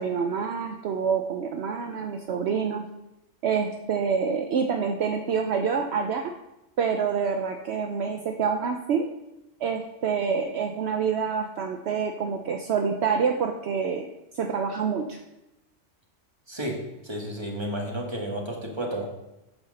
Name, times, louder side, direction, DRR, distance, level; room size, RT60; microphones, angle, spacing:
voice 1, 0.0-2.9 3.4-6.2 6.8-9.0 9.6-14.1 14.3-15.2, right 6 dB, 65° right, 4 dB, 0.9 m, -27 dB
voice 2, 17.1-19.1, right 1 dB, 20° right, -1 dB, 1.8 m, -31 dB
9.3 x 4.9 x 6.5 m, 0.95 s
omnidirectional pair, 1.3 m